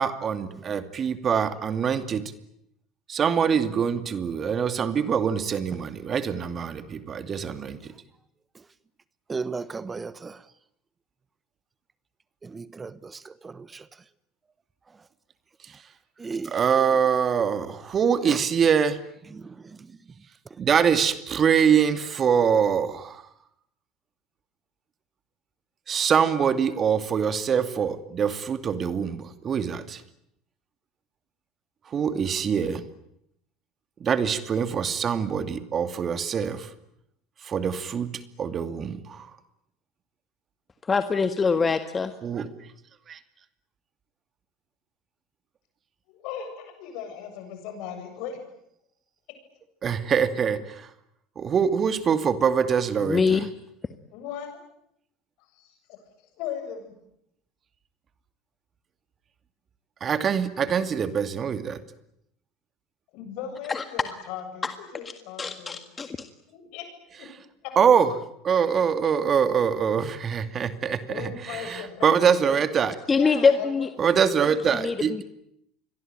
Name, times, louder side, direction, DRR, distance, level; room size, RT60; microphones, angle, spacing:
voice 1, 0.0-2.2 3.1-7.8 16.5-19.0 20.6-23.2 25.9-30.0 31.9-32.8 34.0-36.7 37.4-38.1 38.4-39.3 42.2-42.5 43.1-43.2 49.8-50.9 51.4-53.2 60.0-61.8 67.8-68.1 68.4-73.0 74.0-75.2, right 7 dB, 40° right, 2.5 m, -24 dB
voice 2, 9.3-10.4 12.4-13.9 16.2-16.6 18.3-18.4 19.3-19.9, right 4 dB, 25° right, 1.1 m, -36 dB
voice 3, 40.8-42.1 53.0-53.5 63.7-63.8 64.6-64.7 65.4-66.1 73.1-73.9 74.7-75.2, left 5 dB, 25° left, 1.8 m, -23 dB
voice 4, 46.1-48.4 54.1-54.6 55.5-56.0 56.4-56.9 63.1-65.8 66.5-66.8 67.2-67.3 71.1-72.2 73.2-73.9, left 8 dB, 65° left, 7.9 m, -37 dB
28.5 x 23.0 x 9.1 m
hypercardioid pair, 85°, 0 cm